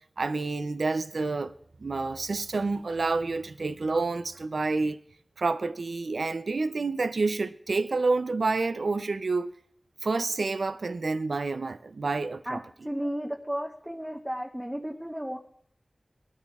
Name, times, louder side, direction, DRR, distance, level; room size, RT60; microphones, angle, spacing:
voice 1, 0.2-1.5 1.8-5.0 5.4-9.5 10.0-12.6, right 3 dB, 90° right, 0.4 m, -28 dB
voice 2, 12.8-15.4, equal, 10° right, 0.9 m, -33 dB
21.0 x 13.0 x 2.3 m
wide cardioid pair, 55°, 0 cm